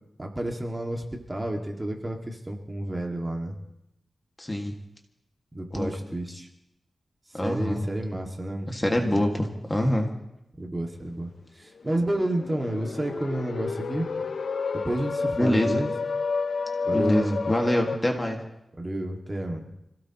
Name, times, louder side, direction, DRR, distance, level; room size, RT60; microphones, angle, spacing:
voice 1, 0.2-3.6 5.5-6.5 7.4-8.7 9.1-9.2 10.6-14.1 14.7-15.9 16.8-17.4 18.8-19.7, right 1 dB, 20° right, 1 dB, 2.1 m, -30 dB
voice 2, 4.4-4.7 5.7-5.9 7.3-7.9 8.7-10.1 15.4-15.8 16.9-18.4, left 1 dB, 15° left, 2 dB, 1.9 m, -25 dB
sound 1, 11.8-18.0, left 4 dB, 75° left, 0.8 m, -30 dB
27.0 x 17.0 x 3.0 m, 0.84 s
wide cardioid pair, 120°, 0 cm